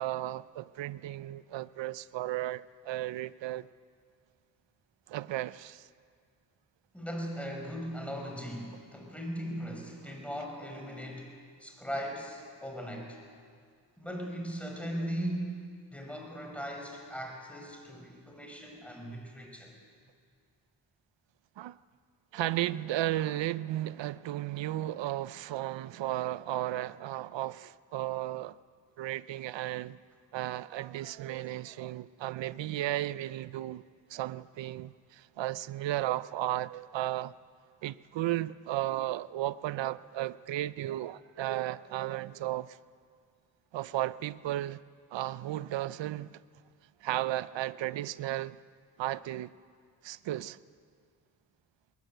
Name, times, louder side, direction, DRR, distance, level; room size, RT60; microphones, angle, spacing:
voice 1, 0.0-3.7 5.1-5.9 21.6-21.8 22.3-28.6 29.0-30.0 30.3-33.8 34.1-37.3 37.8-42.8 43.7-44.8 45.1-46.4 47.0-48.6 49.0-49.5 50.0-50.6, right 14 dB, 85° right, 0.6 m, -34 dB
voice 2, 6.9-13.2 14.0-15.6 15.9-19.7, equal, 5° left, 6.3 m, -38 dB
21.0 x 19.0 x 9.0 m
cardioid pair, 70°, 43 cm